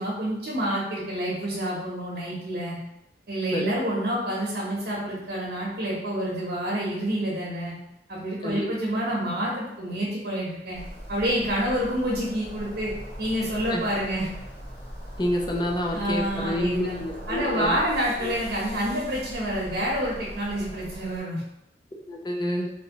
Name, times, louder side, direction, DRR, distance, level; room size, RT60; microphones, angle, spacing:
voice 1, 0.0-2.8 3.3-7.7 8.1-10.8 11.1-12.9 13.2-14.3 15.9-17.0 17.3-21.4, equal, 60° right, -5 dB, 0.9 m, -28 dB
sound 1, 10.7-21.2, equal, 50° left, 1.5 m, -40 dB
voice 2, 15.2-17.7 18.2-18.3 22.1-22.7, left 1 dB, 25° left, 1 dB, 0.5 m, -28 dB
3.4 x 2.9 x 2.9 m, 0.87 s
head